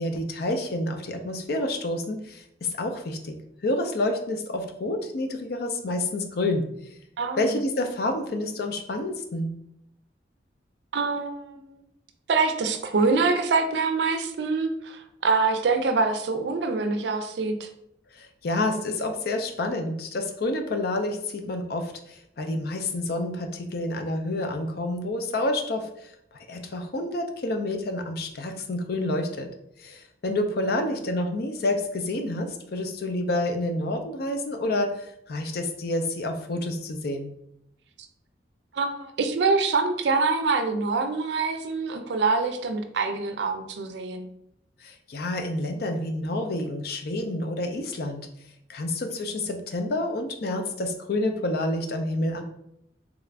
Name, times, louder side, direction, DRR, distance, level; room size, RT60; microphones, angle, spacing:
voice 1, 0.0-3.3 3.6-6.7 7.4-9.5 18.1-26.1 26.5-29.5 29.8-37.3 44.8-48.3 48.7-52.4, left 1 dB, 60° left, 5 dB, 0.5 m, -28 dB
voice 2, 7.2-7.6 10.9-11.8 12.3-17.7 38.7-44.3, right 4 dB, 70° right, 7 dB, 0.4 m, -25 dB
3.6 x 2.4 x 3.2 m, 0.76 s
head